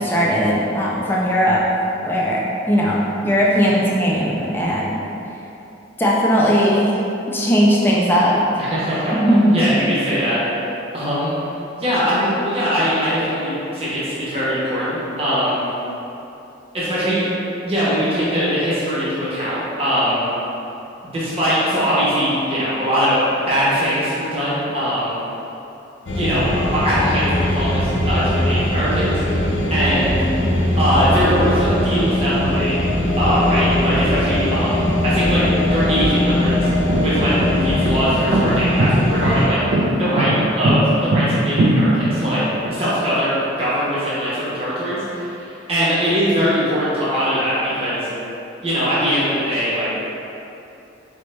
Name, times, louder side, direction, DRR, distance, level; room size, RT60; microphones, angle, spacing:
voice 1, 0.0-1.6 2.0-4.9 6.0-7.0 7.3-8.4 9.2-9.5, equal, 10° left, -5 dB, 0.4 m, -18 dB
voice 2, 8.6-9.1 9.5-10.4 10.9-11.3 11.8-15.6 16.7-17.4 17.6-20.2 21.0-23.2 23.5-25.1 26.1-30.2 30.8-32.9 33.2-35.4 35.7-36.7 37.0-42.4 42.7-48.1 48.6-49.9, equal, 30° right, -10 dB, 0.9 m, -21 dB
sound 1, 26.1-39.5, left 1 dB, 70° left, 0.6 m, -20 dB
sound 2, 36.2-42.7, right 1 dB, 55° right, 0.4 m, -19 dB
4.2 x 3.0 x 3.3 m, 2.9 s
head